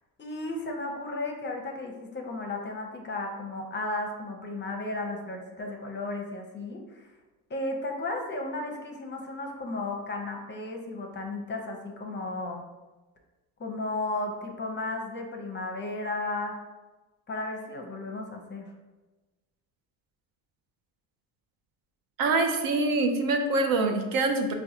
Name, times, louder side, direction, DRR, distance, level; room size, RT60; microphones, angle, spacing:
voice 1, 0.2-7.1 7.5-12.6 13.6-16.5 17.3-18.7, left 2 dB, 30° left, 2 dB, 0.6 m, -34 dB
voice 2, 22.2-24.5, right 3 dB, 60° right, 5 dB, 0.6 m, -25 dB
4.6 x 2.2 x 2.8 m, 1.2 s
cardioid pair, 90°, 38 cm